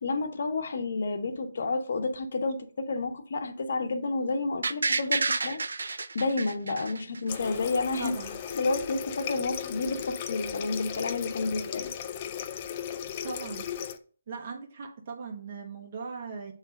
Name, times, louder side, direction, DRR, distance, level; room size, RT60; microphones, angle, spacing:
voice 1, 0.0-5.6 6.1-8.1 8.5-11.9, left 3 dB, 60° left, 1.0 m, -30 dB
sound 1, 4.6-7.6 7.9-8.0, right 3 dB, 80° right, 0.5 m, -30 dB
Water tap faucet, 7.3-14.0, left 9 dB, 30° left, 0.5 m, -36 dB
voice 2, 8.0-8.3 13.2-13.7 14.3-16.5, right 5 dB, 40° right, 1.5 m, -38 dB
8.1 x 3.3 x 5.1 m
hypercardioid pair, 165°, 0 cm